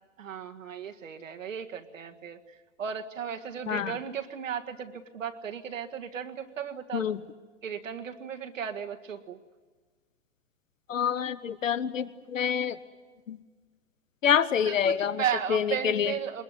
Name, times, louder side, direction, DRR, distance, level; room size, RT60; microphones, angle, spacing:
voice 1, 0.2-7.2 7.6-9.4 14.7-16.4, right 8 dB, 85° right, 5 dB, 1.8 m, -35 dB
voice 2, 3.7-4.0 6.9-7.2 10.9-12.8 13.3-13.4 14.2-15.2 15.5-16.1, left 8 dB, 90° left, 16 dB, 1.0 m, -27 dB
22.5 x 20.5 x 9.7 m, 1.4 s
hypercardioid pair, 115°, 38 cm